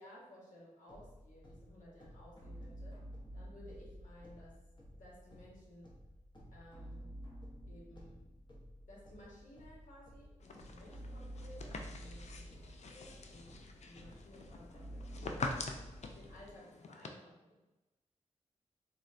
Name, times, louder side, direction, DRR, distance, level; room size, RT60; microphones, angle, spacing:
voice 1, 0.0-3.0 3.3-4.6 4.9-5.9 6.5-7.1 7.7-8.2 8.9-15.8 16.1-17.6, left 1 dB, 75° left, -5 dB, 1.1 m, -57 dB
sound 1, 0.9-16.5, equal, 35° left, 0.9 m, -51 dB
sound 2, 10.4-17.1, left 3 dB, 60° left, 0.4 m, -45 dB
3.6 x 2.1 x 2.5 m, 1.0 s
cardioid pair, 55°, 13 cm